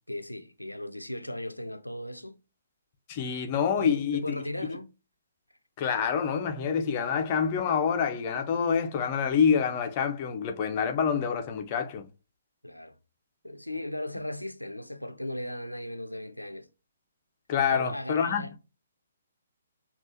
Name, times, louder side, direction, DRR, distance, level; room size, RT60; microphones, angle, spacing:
voice 1, 0.1-2.4 3.8-4.9 12.6-13.0 13.4-16.7 17.6-18.6, left 1 dB, 90° left, 0.5 m, -37 dB
voice 2, 3.1-4.4 5.8-12.1 17.5-18.5, left 7 dB, 30° left, 0.5 m, -27 dB
5.3 x 2.4 x 2.7 m
figure-of-eight pair, 130°, 0 cm